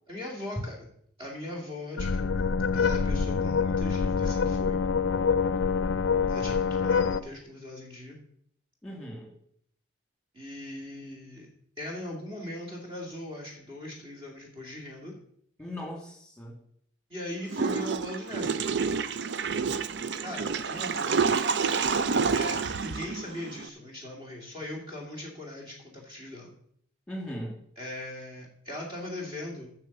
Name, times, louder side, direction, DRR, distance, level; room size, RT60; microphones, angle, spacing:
voice 1, 0.1-0.9 1.2-4.8 6.3-8.2 10.3-11.5 11.8-15.2 17.1-18.6 20.2-21.2 22.1-26.5 27.8-29.7, left 1 dB, 25° right, -1 dB, 2.4 m, -40 dB
sound 1, 2.0-7.2, left 5 dB, 70° left, 0.5 m, -26 dB
voice 2, 8.8-9.3 15.6-16.6 27.1-27.6, equal, 5° left, -1 dB, 2.6 m, -38 dB
Water / Toilet flush, 17.5-23.7, right 5 dB, 55° right, 0.5 m, -28 dB
9.2 x 6.5 x 7.1 m, 0.66 s
head